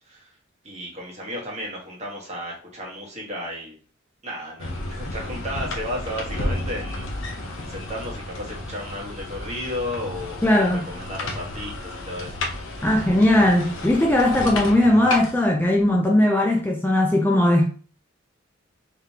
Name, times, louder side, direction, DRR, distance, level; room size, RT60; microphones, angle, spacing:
voice 1, 0.6-3.8 4.2-12.4, left 1 dB, 35° right, 1.4 m, -34 dB
sound 1, 4.6-16.0, left 1 dB, 75° left, 0.8 m, -32 dB
voice 2, 10.4-10.8 12.8-17.7, left 1 dB, 10° left, 0.5 m, -18 dB
3.9 x 3.3 x 2.8 m
head